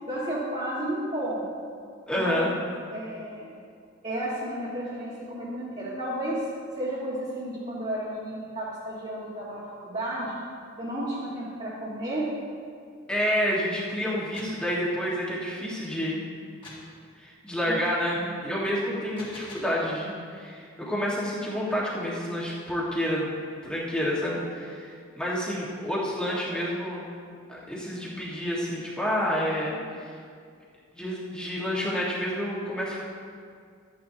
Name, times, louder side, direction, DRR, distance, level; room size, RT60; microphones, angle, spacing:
voice 1, 0.1-1.5 2.2-2.3 2.9-3.5 4.0-6.5 6.8-10.4 10.8-12.3 17.6-17.7 26.3-26.7, right 1 dB, 35° right, -9 dB, 1.8 m, -32 dB
voice 2, 2.1-2.5 13.1-16.2 17.2-24.9 25.2-27.1 27.5-29.8 30.9-33.0, equal, 5° left, -7 dB, 1.6 m, -29 dB
sound 1, 14.3-14.7 16.6-16.9 18.9-19.8, left 2 dB, 25° left, 1.8 m, -45 dB
13.0 x 9.5 x 2.9 m, 2.2 s
head